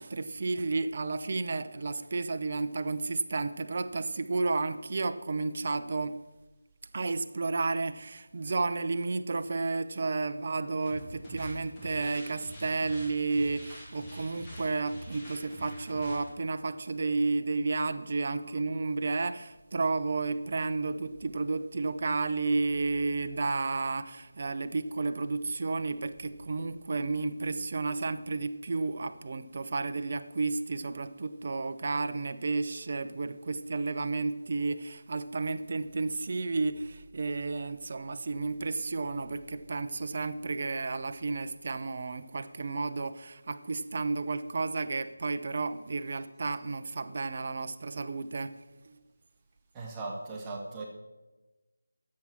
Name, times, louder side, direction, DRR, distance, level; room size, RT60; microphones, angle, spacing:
voice 1, 0.0-6.2 6.9-48.6 48.8-49.0, right 3 dB, 45° right, 10 dB, 0.7 m, -32 dB
sound 1, 10.8-16.3, equal, 15° left, 2.7 m, -46 dB
voice 2, 49.7-50.8, right 3 dB, 15° right, -2 dB, 1.6 m, -38 dB
10.5 x 7.7 x 6.0 m, 1.1 s
figure-of-eight pair, 165°, 0 cm